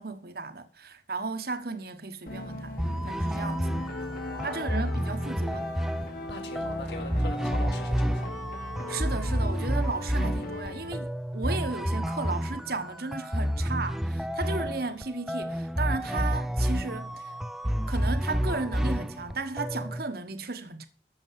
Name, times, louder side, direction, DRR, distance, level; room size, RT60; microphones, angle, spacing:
voice 1, 0.0-3.7 4.4-5.7 8.9-17.3 17.9-20.9, right 3 dB, 55° right, 1.4 m, -35 dB
sound 1, 2.3-11.0, left 1 dB, 50° left, 2.2 m, -39 dB
sound 2, 2.8-20.1, equal, ahead, 0.5 m, -30 dB
voice 2, 4.0-4.9 6.3-8.3, left 3 dB, 70° left, 4.3 m, -41 dB
14.0 x 7.2 x 7.6 m
head